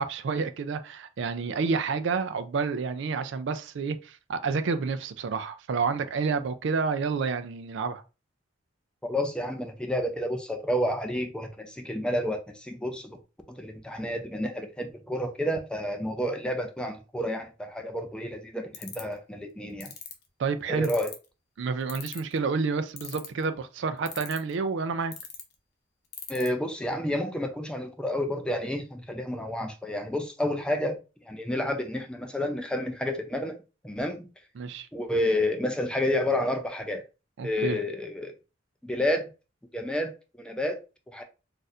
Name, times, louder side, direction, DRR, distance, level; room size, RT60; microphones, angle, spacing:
voice 1, 0.0-8.0 20.4-20.9 21.6-25.1 34.6-34.9 37.4-37.8, right 4 dB, 65° right, 0.4 m, -29 dB
voice 2, 9.0-13.2 13.6-19.9 20.7-21.1 26.3-31.0 31.3-33.6 33.8-34.3 34.9-37.0 37.4-38.3 38.8-39.3 39.7-40.8 41.1-41.2, left 1 dB, 5° left, 0.4 m, -30 dB
sound 1, 18.7-19.1 19.8-20.1 20.8-21.3 21.9-22.4 23.0-23.4 24.1-24.5 25.1-25.4 26.1-26.5, left 9 dB, 55° left, 0.7 m, -38 dB
2.5 x 2.4 x 4.1 m
head